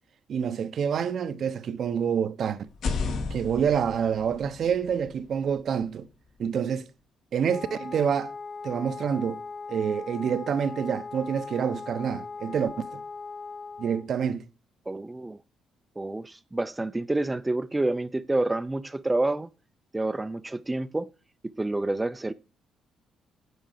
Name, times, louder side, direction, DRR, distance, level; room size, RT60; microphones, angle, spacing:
voice 1, 0.3-2.7 3.3-6.1 6.4-6.8 7.3-8.3 8.6-9.4 9.7-13.0 13.8-14.4, right 7 dB, 60° right, 0.9 m, -27 dB
sound 1, 2.7-6.5, left 4 dB, 70° left, 2.9 m, -35 dB
Wind instrument woodwind instrument, 7.4-14.1, left 4 dB, 35° left, 0.9 m, -39 dB
voice 2, 14.9-15.4 16.0-19.5 19.9-21.1 21.6-22.3, right 2 dB, 15° right, 0.6 m, -28 dB
9.3 x 6.9 x 6.6 m
cardioid pair, 90°, 0 cm